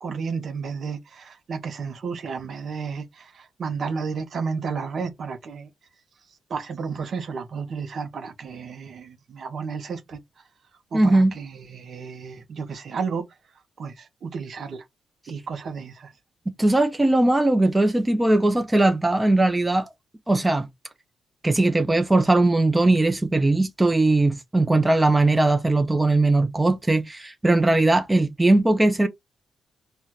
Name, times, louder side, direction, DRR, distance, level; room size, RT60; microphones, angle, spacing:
voice 1, 0.0-5.7 6.5-10.2 10.9-13.2 13.8-14.8 15.3-16.1, right 5 dB, 60° right, 0.6 m, -32 dB
voice 2, 10.9-11.3 16.6-19.9 20.3-20.7 21.4-29.1, right 2 dB, 15° right, 0.5 m, -19 dB
4.3 x 2.2 x 2.3 m
supercardioid pair, 65°, 0 cm